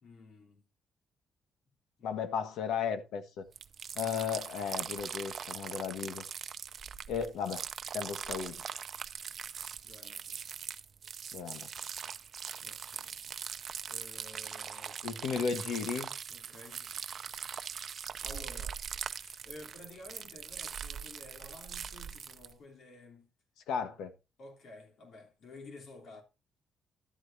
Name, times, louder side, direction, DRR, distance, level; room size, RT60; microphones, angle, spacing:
voice 1, 0.0-0.6 2.0-2.1 9.8-10.5 12.6-13.2 13.9-15.0 16.3-17.1 18.2-18.8 19.1-23.3 24.4-26.2, left 2 dB, 65° left, 3.2 m, -52 dB
voice 2, 2.0-3.5 3.9-6.2 7.1-7.6 7.9-8.6 11.3-11.7 15.0-16.1 23.7-24.1, left 6 dB, 80° left, 1.4 m, -35 dB
sound 1, 3.5-22.5, right 7 dB, 55° right, 0.6 m, -41 dB
12.0 x 8.1 x 2.7 m
cardioid pair, 90°, 0 cm